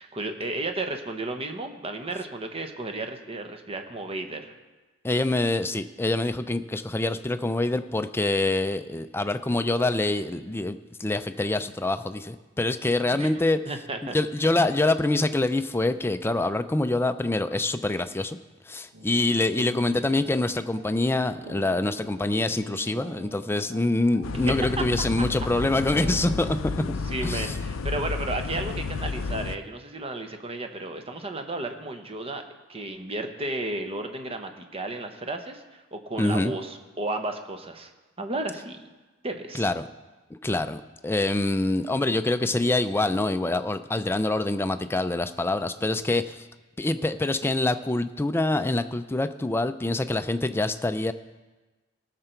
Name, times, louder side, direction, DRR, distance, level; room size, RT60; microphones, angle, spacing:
voice 1, 0.0-4.5 13.1-13.3 13.7-14.2 14.4-14.6 24.8-24.9 26.0-26.5 26.8-32.4 32.7-37.9 38.2-38.8 39.2-39.7, right 2 dB, 30° right, 6 dB, 1.0 m, -33 dB
voice 2, 5.0-13.6 14.1-18.4 18.7-26.8 27.2-27.5 36.2-36.5 39.5-39.9 40.4-46.5 46.8-51.1, left 2 dB, 10° left, 10 dB, 0.4 m, -25 dB
sound 1, 18.9-26.6, right 1 dB, 85° right, 1.0 m, -45 dB
sound 2, 24.2-29.6, left 4 dB, 75° left, 0.5 m, -31 dB
18.5 x 6.8 x 4.5 m, 1.2 s
head